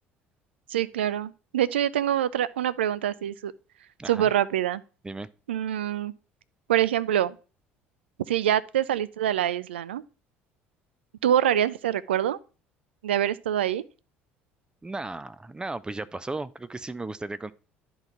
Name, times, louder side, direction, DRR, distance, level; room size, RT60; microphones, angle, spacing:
voice 1, 0.7-3.5 4.1-4.8 5.5-6.1 6.7-7.4 8.3-10.0 11.2-12.4 13.0-13.8, right 11 dB, 80° right, 0.4 m, -25 dB
voice 2, 4.0-4.3 5.0-5.3 14.8-17.5, right 2 dB, 15° right, 0.5 m, -35 dB
10.5 x 4.0 x 4.3 m
figure-of-eight pair, 60°, 6 cm